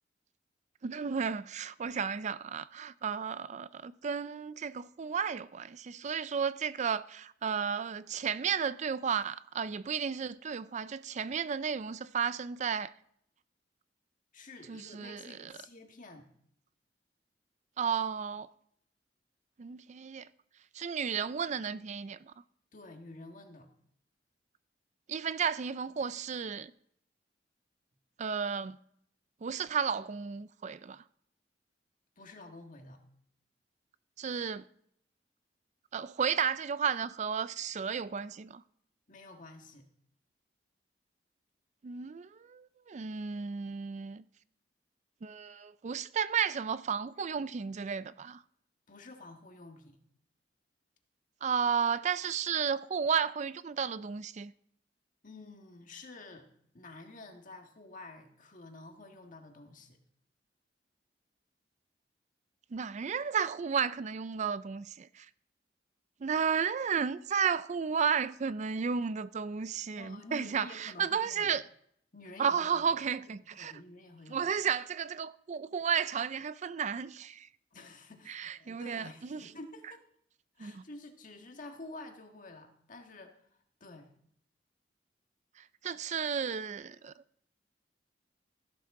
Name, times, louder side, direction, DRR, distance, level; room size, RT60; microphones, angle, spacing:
voice 1, 0.8-12.9 14.7-15.5 17.8-18.5 19.6-20.3 20.7-22.3 25.1-26.7 28.2-28.8 29.4-31.0 34.2-34.6 35.9-38.6 41.8-44.2 45.2-48.4 51.4-54.5 62.7-65.3 66.2-71.6 72.4-73.7 74.3-77.5 78.3-79.4 80.6-80.8 85.6-87.1, right 6 dB, 40° right, 0.4 m, -33 dB
voice 2, 14.3-16.3 22.7-23.7 32.2-33.0 39.1-39.9 48.9-50.0 55.2-56.5 56.7-60.0 70.0-71.5 72.1-72.9 73.3-74.5 77.7-80.0 80.6-83.4 83.8-84.1, left 2 dB, 50° left, 1.7 m, -50 dB
15.5 x 12.0 x 3.7 m
head